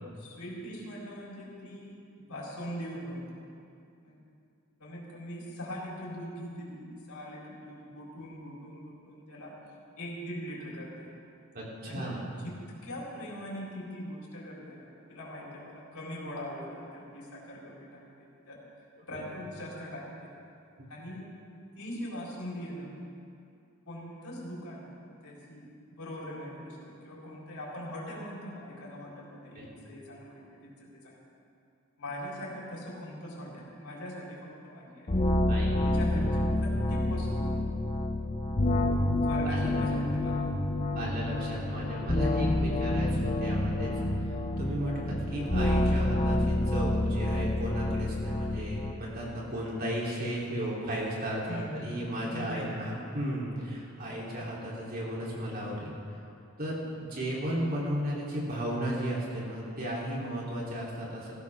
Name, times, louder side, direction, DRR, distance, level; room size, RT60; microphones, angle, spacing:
voice 1, 0.2-3.4 4.0-4.2 4.8-9.5 10.0-11.1 11.8-18.6 19.0-20.3 20.9-21.3 21.7-22.9 23.9-24.9 25.2-31.3 32.0-35.1 35.8-37.5 39.3-40.4 51.5-52.7, equal, 85° left, -5 dB, 4.0 m, -41 dB
voice 2, 11.5-12.2 19.1-19.2 29.5-29.7 35.5-35.8 36.1-36.3 39.4-39.8 40.9-55.9 56.6-61.4, equal, 45° right, -5 dB, 3.4 m, -35 dB
sound 1, 35.1-48.9, left 1 dB, 30° left, 0.8 m, -28 dB
19.0 x 15.0 x 3.6 m, 2.5 s
head